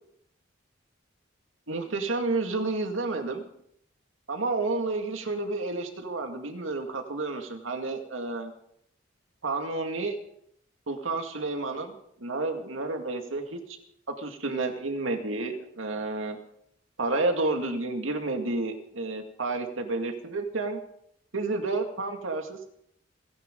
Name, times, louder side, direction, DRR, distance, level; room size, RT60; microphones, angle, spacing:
voice 1, 1.7-3.5 4.3-8.5 9.4-10.2 10.9-11.9 12.2-13.8 14.2-16.4 17.0-20.8 21.3-22.7, right 3 dB, 90° right, 4 dB, 2.1 m, -30 dB
29.5 x 10.5 x 3.8 m, 0.71 s
head